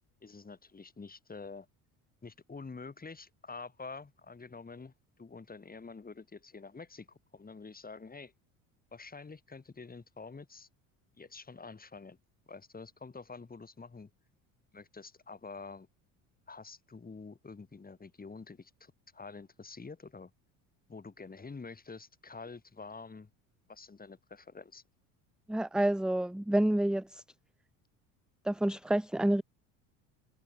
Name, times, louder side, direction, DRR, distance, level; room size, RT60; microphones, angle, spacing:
voice 1, 0.2-1.7 2.2-8.3 8.9-10.7 11.2-12.2 12.5-14.1 14.7-15.9 16.5-20.3 20.9-23.3 23.7-24.8, left 4 dB, 20° left, 7.3 m, -47 dB
voice 2, 25.5-27.2 28.4-29.4, right 1 dB, ahead, 0.8 m, -28 dB
supercardioid pair, 90°, 40 cm